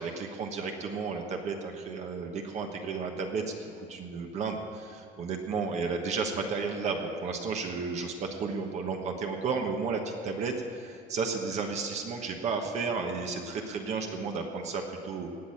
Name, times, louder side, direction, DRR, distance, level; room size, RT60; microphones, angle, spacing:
voice 1, 0.0-15.3, right 4 dB, 40° right, 3 dB, 1.2 m, -33 dB
18.5 x 6.2 x 8.7 m, 2.5 s
cardioid pair, 165°, 18 cm